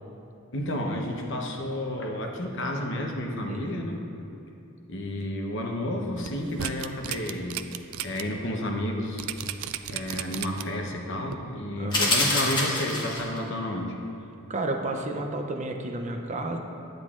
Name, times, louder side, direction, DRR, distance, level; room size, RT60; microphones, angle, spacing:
voice 1, 0.5-3.9 4.9-7.6 8.0-9.3 9.9-14.0, left 1 dB, 60° left, 2 dB, 0.9 m, -31 dB
voice 2, 3.5-3.9 11.7-12.1 14.5-16.6, right 2 dB, 35° right, 4 dB, 0.5 m, -32 dB
sound 1, 6.2-8.2 8.6-8.7 9.2-10.8 11.3-11.4, right 10 dB, 90° right, 0.3 m, -34 dB
sound 2, 11.9-13.4, left 1 dB, 20° left, 1.2 m, -25 dB
9.9 x 9.2 x 2.4 m, 2.8 s
head